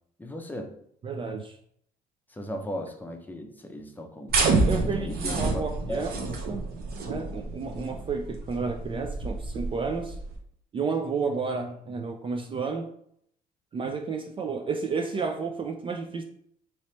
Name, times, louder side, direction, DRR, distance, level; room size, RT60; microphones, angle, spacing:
voice 1, 0.2-0.7 2.3-6.1, equal, 10° left, 3 dB, 0.6 m, -37 dB
voice 2, 1.0-1.6 4.7-6.1 6.5-6.7 7.1-10.2 10.7-12.9 13.7-16.2, right 4 dB, 30° right, 4 dB, 0.4 m, -31 dB
sound 1, 4.3-10.3, right 3 dB, 65° right, 0.9 m, -28 dB
3.1 x 3.0 x 4.2 m, 0.68 s
cardioid pair, 110°, 17 cm